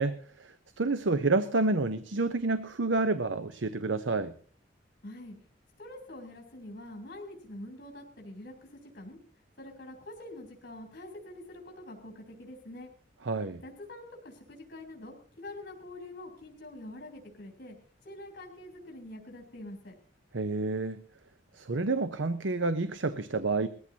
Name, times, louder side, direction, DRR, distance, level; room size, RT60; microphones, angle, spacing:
voice 1, 0.0-4.3 13.3-13.6 20.3-21.0 21.5-23.7, right 3 dB, 85° right, 11 dB, 0.8 m, -29 dB
voice 2, 5.0-5.4 5.8-9.2 9.6-12.9 13.6-17.7 18.0-20.0, left 1 dB, 55° left, 1 dB, 3.5 m, -45 dB
21.0 x 14.5 x 2.8 m, 0.43 s
head